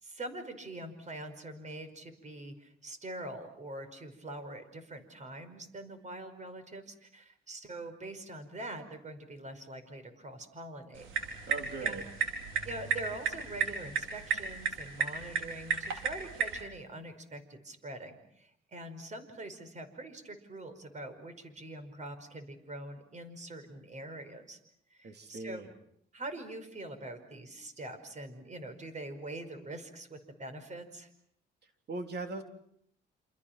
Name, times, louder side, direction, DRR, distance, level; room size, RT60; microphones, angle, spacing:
voice 1, 0.0-11.1 11.8-12.0 12.6-24.6 24.9-25.6 26.1-31.1, right 1 dB, 35° right, 9 dB, 5.3 m, -44 dB
sound 1, 10.9-16.6, right 6 dB, 80° right, 4.8 m, -34 dB
voice 2, 11.5-12.0 25.0-25.7 31.9-32.4, right 3 dB, 55° right, 5 dB, 3.6 m, -39 dB
28.5 x 27.5 x 6.0 m, 0.70 s
cardioid pair, 90°, 20 cm